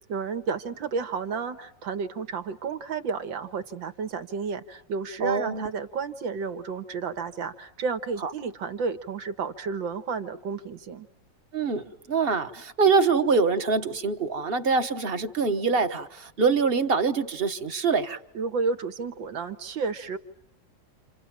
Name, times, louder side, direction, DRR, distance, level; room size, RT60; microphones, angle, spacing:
voice 1, 0.1-11.1 18.3-20.2, right 5 dB, 75° right, 2.1 m, -31 dB
voice 2, 5.2-5.7 8.2-8.3 11.5-18.2, right 4 dB, 35° right, 1.2 m, -24 dB
29.0 x 27.5 x 7.4 m
omnidirectional pair, 2.1 m